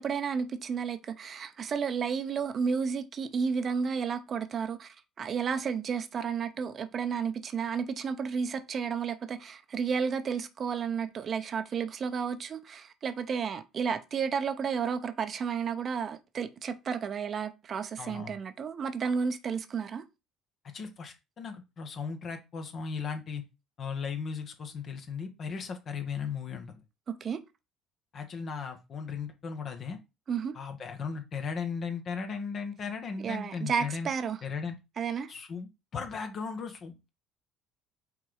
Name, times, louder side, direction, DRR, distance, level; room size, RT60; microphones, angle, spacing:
voice 1, 0.0-20.0 27.1-27.4 30.3-30.5 33.2-34.4 35.0-35.3, right 6 dB, 45° right, 0.9 m, -32 dB
voice 2, 18.0-18.4 20.7-23.4 23.8-26.8 28.1-30.0 30.5-34.1 34.4-34.8 35.3-37.1, left 5 dB, 45° left, 1.6 m, -37 dB
5.7 x 3.7 x 4.8 m
hypercardioid pair, 60°, 0 cm